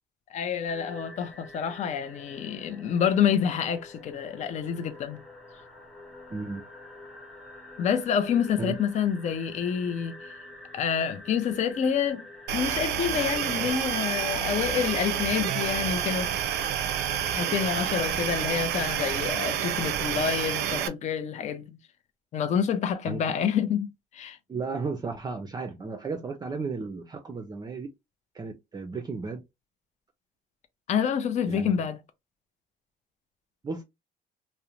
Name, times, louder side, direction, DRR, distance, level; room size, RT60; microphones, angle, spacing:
voice 1, 0.3-5.2 7.8-10.3 10.7-12.2 12.5-16.3 17.3-21.8 22.3-24.4 30.9-32.0, left 8 dB, 45° left, 0.5 m, -28 dB
sound 1, 0.7-18.1, left 1 dB, ahead, 0.8 m, -47 dB
sound 2, 12.5-20.9, right 10 dB, 80° right, 0.4 m, -29 dB
voice 2, 24.5-27.9 28.3-29.4 31.5-31.9 33.6-33.8, right 4 dB, 25° right, 0.4 m, -34 dB
2.5 x 2.0 x 2.9 m
cardioid pair, 110°, 17 cm